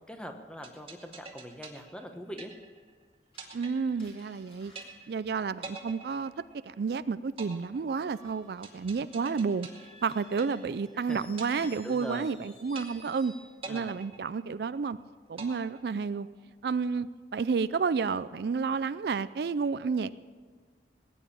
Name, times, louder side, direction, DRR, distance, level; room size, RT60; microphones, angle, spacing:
voice 1, 0.0-2.5 10.9-12.3 13.6-13.9 15.4-15.5, equal, 5° left, 5 dB, 1.1 m, -43 dB
sound 1, 0.6-2.9 3.4-4.4 4.8-5.3 5.6-6.9 7.4-10.9 11.4-12.4 12.8-13.3 13.6-14.9 15.4-16.4, right 4 dB, 30° right, 1.9 m, -45 dB
Screech, 3.3-6.2 7.9-13.6, left 1 dB, 30° left, 4.7 m, -57 dB
voice 2, 3.5-4.7 5.1-6.3 6.6-9.7 10.0-13.3 13.7-15.0 15.3-16.3 16.6-20.1, right 5 dB, 60° right, 15 dB, 0.4 m, -31 dB
18.5 x 9.1 x 7.2 m, 1.5 s
head